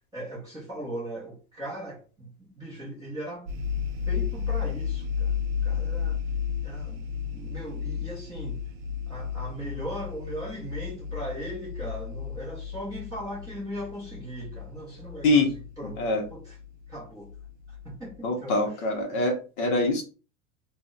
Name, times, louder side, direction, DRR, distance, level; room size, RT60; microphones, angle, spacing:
voice 1, 0.1-3.5 4.1-5.3 5.6-6.2 6.6-7.0 7.3-8.6 9.1-16.0 16.3-16.6 16.9-17.3 17.8-18.9 19.6-19.8, right 1 dB, 10° right, 0.4 m, -38 dB
sound 1, 3.5-18.2, left 7 dB, 75° right, 0.7 m, -33 dB
voice 2, 18.2-20.0, left 2 dB, 40° left, 0.5 m, -24 dB
2.2 x 2.0 x 3.7 m
supercardioid pair, 175°, 43 cm